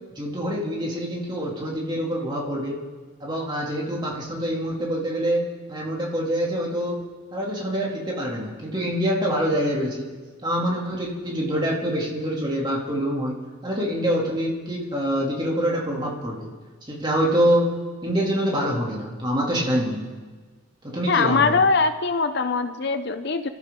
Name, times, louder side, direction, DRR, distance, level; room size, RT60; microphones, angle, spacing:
voice 1, 0.2-2.8 3.2-10.1 10.4-13.4 13.6-16.5 16.9-20.1 20.8-21.6, equal, 20° right, -3 dB, 2.7 m, -25 dB
voice 2, 21.1-23.5, left 4 dB, 50° left, 9 dB, 0.6 m, -22 dB
28.5 x 13.5 x 3.8 m, 1.4 s
head